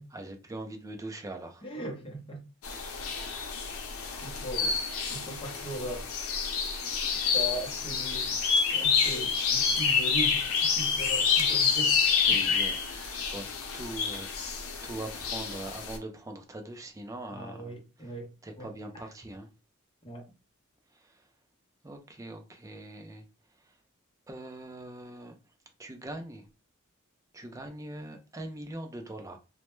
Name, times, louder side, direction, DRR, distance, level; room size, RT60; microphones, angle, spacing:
voice 1, 0.1-1.6 12.1-13.4 13.7-17.8 18.4-19.5 21.8-23.2 24.3-25.4 25.8-26.4 27.3-29.4, right 1 dB, 15° right, 0.4 m, -42 dB
voice 2, 1.6-2.4 3.3-3.4 4.2-4.7 5.1-6.1 7.3-8.4 8.7-12.0 12.3-12.4 17.3-18.7 18.9-19.1 20.0-20.3, right 1 dB, 25° left, 0.7 m, -38 dB
sound 1, 2.6-16.0, left 6 dB, 85° left, 0.6 m, -28 dB
2.1 x 2.1 x 3.0 m
head